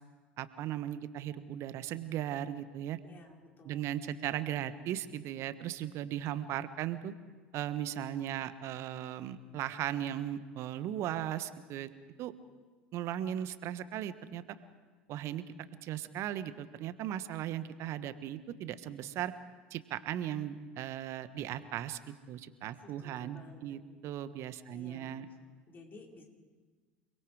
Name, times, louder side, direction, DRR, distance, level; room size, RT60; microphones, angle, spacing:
voice 1, 0.4-3.0 3.6-7.1 7.5-11.9 12.2-12.3 12.9-14.4 15.1-15.4 15.8-19.3 19.7-22.0 22.3-25.3, right 11 dB, 50° right, 13 dB, 1.3 m, -37 dB
voice 2, 3.0-3.9 22.8-23.8 24.7-25.1 25.7-26.2, left 2 dB, 35° left, 0 dB, 5.1 m, -54 dB
29.0 x 21.5 x 4.9 m, 1.4 s
hypercardioid pair, 70°, 6 cm